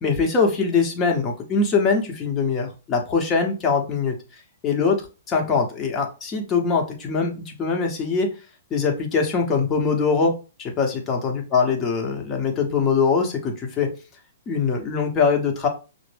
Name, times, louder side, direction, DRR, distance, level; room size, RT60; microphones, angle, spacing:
voice 1, 0.0-4.1 4.6-5.0 5.3-8.3 8.7-10.3 10.6-13.9 14.5-15.7, left 5 dB, 25° left, 1 dB, 1.0 m, -22 dB
5.8 x 2.1 x 3.3 m, 0.32 s
figure-of-eight pair, 115°, 0 cm